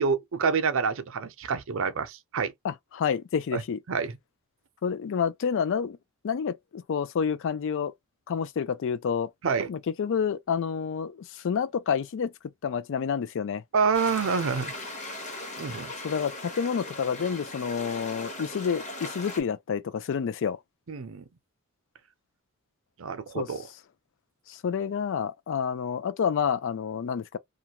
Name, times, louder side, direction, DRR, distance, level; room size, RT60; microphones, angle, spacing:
voice 1, 0.0-2.5 3.5-3.6 3.9-4.1 9.4-9.7 13.7-14.7 15.6-15.9 20.9-21.2 23.0-23.6, right 5 dB, 65° right, 0.6 m, -27 dB
voice 2, 2.6-3.8 4.8-6.0 6.2-7.9 8.3-9.3 9.7-12.3 12.6-13.6 16.0-20.6 23.4-23.5 24.5-27.4, left 7 dB, 60° left, 0.4 m, -29 dB
sound 1, 13.9-19.4, left 1 dB, 35° left, 0.9 m, -39 dB
2.5 x 2.2 x 2.8 m
head